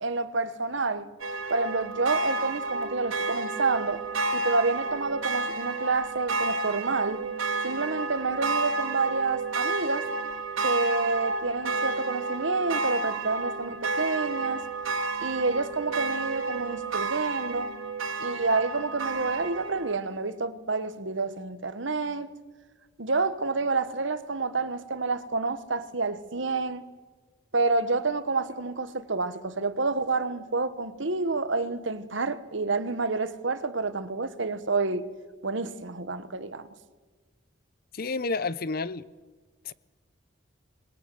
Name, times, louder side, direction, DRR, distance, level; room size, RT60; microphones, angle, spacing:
voice 1, 0.0-1.1 1.5-4.0 4.3-7.2 7.6-10.1 10.6-14.6 15.2-17.7 18.2-22.3 23.0-26.9 27.5-35.0 35.4-36.7, right 3 dB, 65° right, 1.2 m, -28 dB
sound 1, 1.2-20.0, right 3 dB, 85° right, 2.7 m, -31 dB
voice 2, 37.9-39.1 39.6-39.7, left 3 dB, 50° left, 0.6 m, -30 dB
24.5 x 21.0 x 7.8 m
head